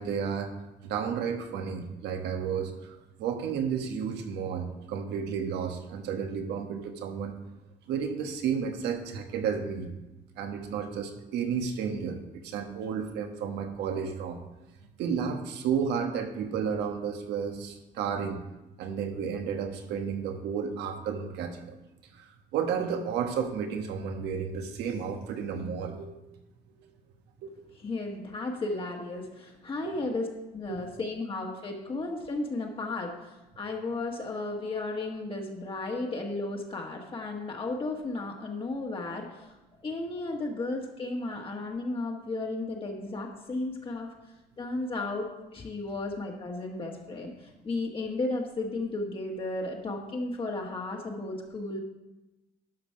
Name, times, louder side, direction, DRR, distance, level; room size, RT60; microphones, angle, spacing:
voice 1, 0.0-7.4 7.9-9.9 10.4-14.4 15.0-18.4 18.8-21.8 22.1-26.2 27.4-27.6 29.8-30.0 30.7-30.9, right 7 dB, 80° right, 5 dB, 1.3 m, -32 dB
voice 2, 27.7-39.6 39.8-44.1 44.6-51.8, left 2 dB, 30° left, 0 dB, 1.5 m, -34 dB
12.0 x 5.2 x 5.7 m, 1.0 s
cardioid pair, 110°, 17 cm